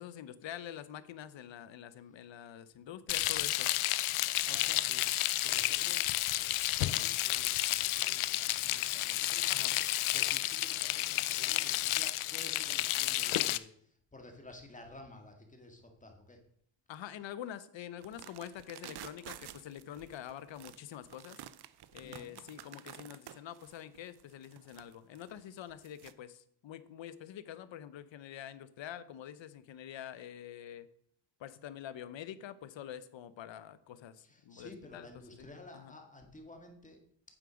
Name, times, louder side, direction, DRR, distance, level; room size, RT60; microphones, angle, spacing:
voice 1, 0.0-3.7 9.5-9.8 16.9-21.4 21.9-30.9 31.4-35.1 35.4-35.5 35.7-35.9, left 10 dB, 65° left, 14 dB, 0.9 m, -46 dB
Frying (food), 3.1-13.6, left 16 dB, 85° left, 0.6 m, -31 dB
voice 2, 4.2-5.1 5.4-6.5 6.8-9.7 10.1-16.4 22.0-22.4 34.2-37.0, left 2 dB, 15° left, 3 dB, 1.8 m, -53 dB
sound 1, 18.0-26.1, right 11 dB, 55° right, 0.6 m, -51 dB
9.1 x 7.7 x 5.1 m, 0.66 s
cardioid pair, 120°, 48 cm